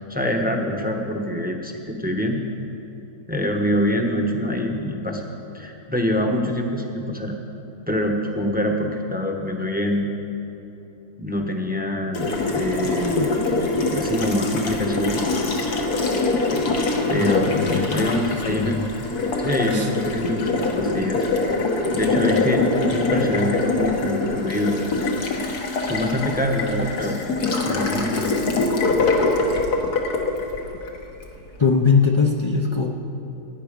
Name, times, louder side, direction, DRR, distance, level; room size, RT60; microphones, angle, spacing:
voice 1, 0.1-2.4 3.3-5.2 5.5-7.3 7.9-10.1 11.2-13.4 13.9-15.2 17.1-18.8 19.4-21.2 21.9-22.7 22.9-24.8 25.9-27.2 27.6-28.3, left 1 dB, 10° right, 2 dB, 0.8 m, -25 dB
Water tap faucet, 12.1-31.3, left 3 dB, 80° left, 1.8 m, -24 dB
voice 2, 17.2-18.9 19.7-19.9 31.6-32.9, left 5 dB, 40° left, 0 dB, 0.4 m, -21 dB
16.5 x 9.5 x 5.1 m, 2.9 s
omnidirectional pair, 1.7 m